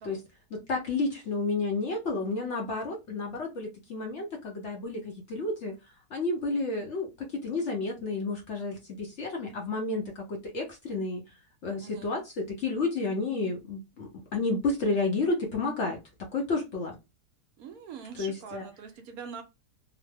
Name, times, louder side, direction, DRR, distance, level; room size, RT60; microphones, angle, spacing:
voice 1, 0.5-5.7 6.1-11.2 11.6-16.9 18.2-18.7, left 3 dB, 55° left, 1 dB, 0.9 m, -31 dB
voice 2, 11.8-12.1 17.6-19.4, right 6 dB, 75° right, 7 dB, 1.0 m, -43 dB
2.9 x 2.0 x 3.3 m, 0.24 s
omnidirectional pair, 1.7 m